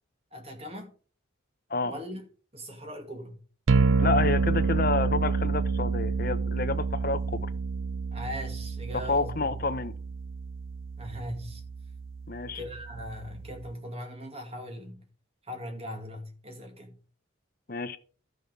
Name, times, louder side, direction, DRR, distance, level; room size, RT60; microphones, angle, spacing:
voice 1, 0.3-0.9 1.8-2.3 2.5-3.4 8.1-9.6 11.0-11.6 12.5-15.0 15.4-17.0, equal, 30° right, 2.3 m, -40 dB
sound 1, 3.7-13.7, right 4 dB, 85° right, 0.5 m, -29 dB
voice 2, 4.0-7.5 8.9-9.9 12.3-12.6 17.7-18.0, left 3 dB, 45° left, 0.9 m, -29 dB
12.5 x 6.4 x 5.2 m
head